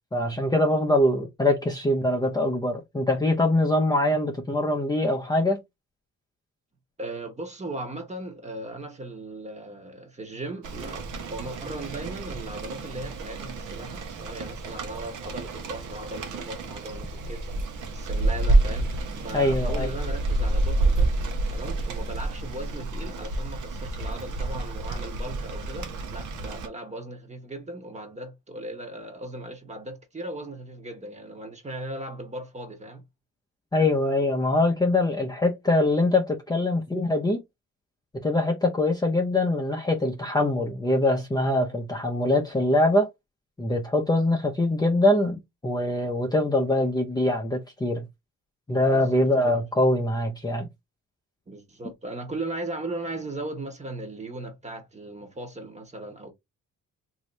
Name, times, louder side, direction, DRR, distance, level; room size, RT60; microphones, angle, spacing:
voice 1, 0.1-5.6 19.3-19.9 33.7-37.4 38.2-43.1 43.6-48.1 48.7-50.7, left 1 dB, 15° left, 0.6 m, -23 dB
voice 2, 7.0-11.0 11.3-17.5 17.9-21.1 21.5-33.0 48.9-49.6 51.5-56.3, right 2 dB, 25° right, 1.0 m, -37 dB
Rain, 10.6-26.7, right 2 dB, 85° right, 0.9 m, -29 dB
3.1 x 2.7 x 3.0 m
cardioid pair, 90°, 30 cm